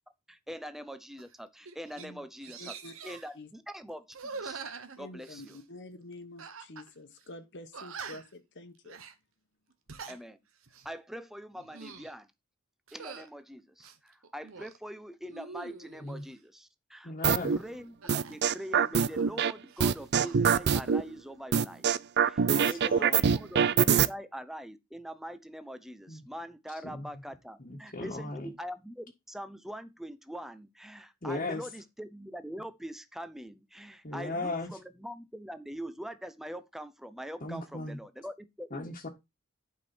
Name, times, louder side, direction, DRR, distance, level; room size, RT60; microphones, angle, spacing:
voice 1, 0.3-2.7 3.0-4.6 5.0-5.6 10.1-10.4 10.8-12.3 12.9-21.9 22.2-39.0, equal, ahead, 0.8 m, -43 dB
sound 1, 1.2-1.3 1.7-2.1 2.4-3.3 4.1-5.6 6.4-6.9 7.2-7.3 7.7-8.4 8.8-9.1 9.7-10.2 10.6-10.9 11.5-12.1 12.9-13.3 13.8-14.8 15.3-16.2 18.0-19.4 19.7-20.4, right 5 dB, 85° right, 1.3 m, -45 dB
voice 2, 2.6-2.9 3.3-3.5 5.0-9.0, left 2 dB, 60° left, 1.3 m, -47 dB
voice 3, 17.0-17.6 22.5-23.2 26.1-26.2 26.8-27.1 27.6-28.5 31.2-31.6 34.0-34.7 37.4-38.0 38.7-39.1, left 2 dB, 40° left, 1.6 m, -37 dB
sound 2, 17.2-17.6 18.1-19.5 19.8-21.0 21.5-24.1, right 7 dB, 55° right, 0.5 m, -24 dB
11.5 x 5.4 x 4.4 m
head